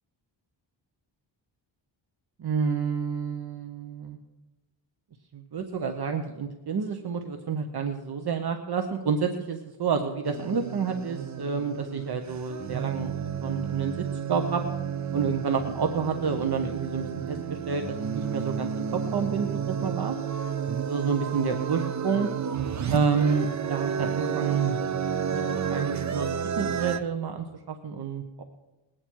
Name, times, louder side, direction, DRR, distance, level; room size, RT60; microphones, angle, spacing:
voice 1, 2.4-4.2 5.3-13.1 13.4-14.6 15.1-20.1 20.8-22.3 22.9-25.0 25.3-28.4, right 6 dB, 55° right, 5 dB, 1.0 m, -29 dB
sound 1, 10.2-27.0, right 7 dB, 40° right, 0.6 m, -31 dB
20.5 x 8.8 x 4.6 m, 1.1 s
wide cardioid pair, 155°, 46 cm